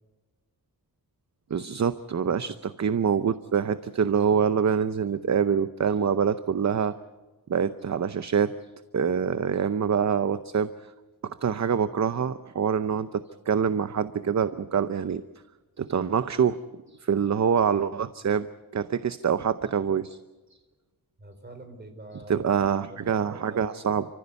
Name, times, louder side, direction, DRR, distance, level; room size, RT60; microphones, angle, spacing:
voice 1, 1.5-6.9 7.5-8.5 8.9-10.7 11.2-15.2 15.8-16.6 17.0-18.5 18.7-20.2 22.3-24.1, right 7 dB, 50° right, 12 dB, 0.7 m, -25 dB
voice 2, 2.2-2.5 21.2-23.7, right 1 dB, 25° right, 6 dB, 4.6 m, -45 dB
30.0 x 15.0 x 8.2 m, 1.2 s
wide cardioid pair, 135°, 37 cm